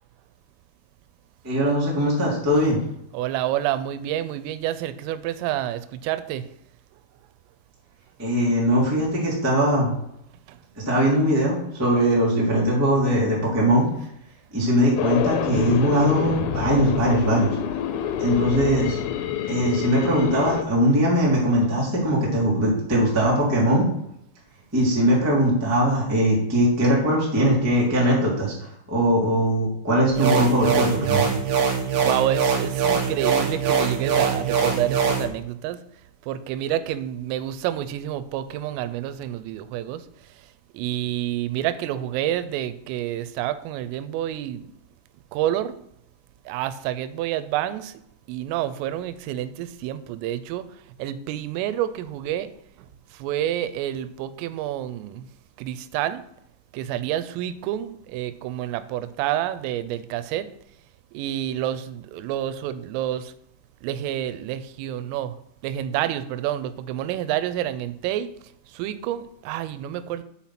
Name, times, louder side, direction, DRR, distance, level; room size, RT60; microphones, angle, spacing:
voice 1, 1.4-2.8 8.2-9.9 10.7-13.8 14.5-17.5 18.2-19.0 19.5-23.9 24.7-31.3, equal, 10° right, -5 dB, 0.9 m, -21 dB
voice 2, 3.1-6.5 10.5-10.6 32.0-35.8 36.2-40.1 40.4-40.5 40.7-44.7 45.3-45.9 46.5-48.0 48.3-50.7 51.0-52.5 52.8-55.3 55.6-56.2 56.7-60.5 61.1-63.3 63.8-65.4 65.6-68.3 68.7-70.2, right 12 dB, 90° right, 13 dB, 3.2 m, -28 dB
sound 1, 15.0-20.6, left 9 dB, 85° left, 3.3 m, -27 dB
sound 2, 30.1-35.2, right 6 dB, 70° right, 2.1 m, -23 dB
6.5 x 5.8 x 5.8 m, 0.75 s
omnidirectional pair, 5.8 m